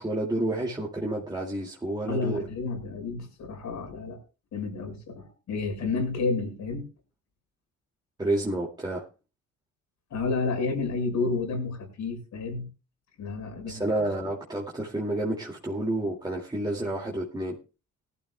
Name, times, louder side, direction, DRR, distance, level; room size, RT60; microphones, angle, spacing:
voice 1, 0.0-2.4 8.2-9.1 13.7-17.6, right 1 dB, 15° right, -2 dB, 2.2 m, -30 dB
voice 2, 2.1-4.2 4.5-6.9 10.1-12.7 13.2-14.0, left 4 dB, 70° left, 4 dB, 5.9 m, -30 dB
19.0 x 12.5 x 2.2 m, 0.32 s
cardioid pair, 90°, 30 cm